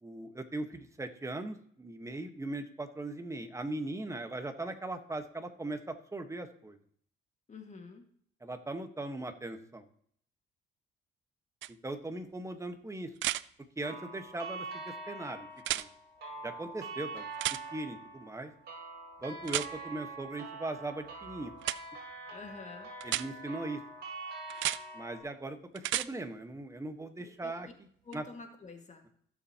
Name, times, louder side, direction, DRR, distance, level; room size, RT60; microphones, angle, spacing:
voice 1, 0.0-6.8 8.4-9.8 11.7-13.1 13.8-15.5 15.7-15.9 16.4-17.3 17.7-18.5 19.2-21.5 23.0-23.8 24.9-25.6 25.9-28.2, right 2 dB, 15° right, 7 dB, 1.3 m, -39 dB
voice 2, 7.5-8.1 22.3-22.9 27.2-27.5 28.1-29.0, left 4 dB, 35° left, 4 dB, 1.9 m, -48 dB
sound 1, 11.6-11.7 13.2-13.4 15.6-15.9 17.4-17.6 19.5-19.7 21.6-21.8 23.0-23.3 24.5-24.8 25.8-26.1 28.1-28.2, right 14 dB, 75° right, 0.4 m, -32 dB
sound 2, 13.8-25.2, right 3 dB, 55° right, 4.8 m, -44 dB
16.0 x 7.1 x 2.9 m, 0.62 s
cardioid pair, 90°, 20 cm